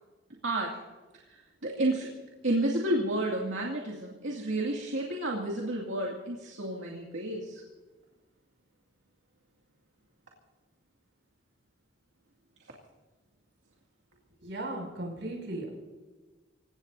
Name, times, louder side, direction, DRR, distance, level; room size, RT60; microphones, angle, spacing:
voice 1, 1.3-2.1 2.4-7.6, right 1 dB, 85° right, -2 dB, 2.4 m, -31 dB
voice 2, 14.4-15.7, right 1 dB, 70° right, -1 dB, 6.5 m, -36 dB
26.5 x 17.0 x 2.7 m, 1.3 s
head